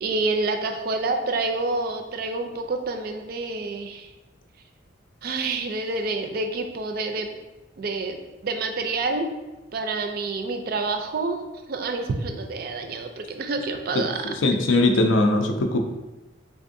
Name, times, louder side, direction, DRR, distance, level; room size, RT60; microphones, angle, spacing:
voice 1, 0.0-4.1 5.2-7.3 7.8-9.3 9.7-11.4 11.7-14.2 15.5-15.7, right 3 dB, 50° right, 5 dB, 0.4 m, -28 dB
voice 2, 13.9-15.8, left 2 dB, 85° left, 5 dB, 0.5 m, -21 dB
3.5 x 3.5 x 2.6 m, 1.1 s
head